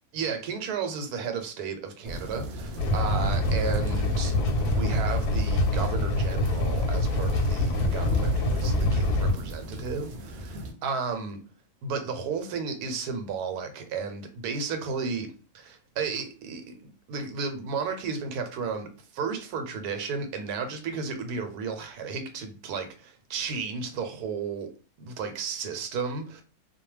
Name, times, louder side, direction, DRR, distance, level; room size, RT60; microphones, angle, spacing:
voice 1, 0.1-4.3 4.6-11.4 11.8-24.7 25.0-26.4, right 5 dB, 85° right, 1.1 m, -33 dB
sound 1, 2.0-10.7, right 1 dB, 65° right, 0.7 m, -36 dB
sound 2, 2.8-9.3, left 1 dB, 90° left, 1.1 m, -25 dB
2.3 x 2.2 x 3.1 m
omnidirectional pair, 1.6 m